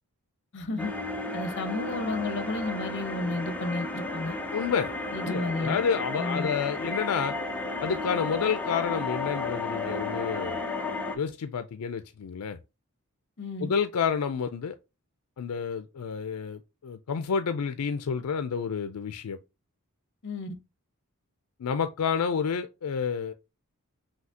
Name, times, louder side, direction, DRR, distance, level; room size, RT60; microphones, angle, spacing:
voice 1, 0.5-0.9 1.3-4.4 5.1-5.8 6.2-6.5 13.4-13.7 20.2-20.5, left 2 dB, 55° left, 0.8 m, -32 dB
sound 1, 0.8-11.2, left 2 dB, 5° left, 0.6 m, -33 dB
voice 2, 4.5-4.9 5.2-7.3 7.8-10.6 11.2-12.6 13.6-14.8 15.4-19.4 21.6-23.3, left 6 dB, 80° left, 0.4 m, -29 dB
5.7 x 2.8 x 2.8 m
head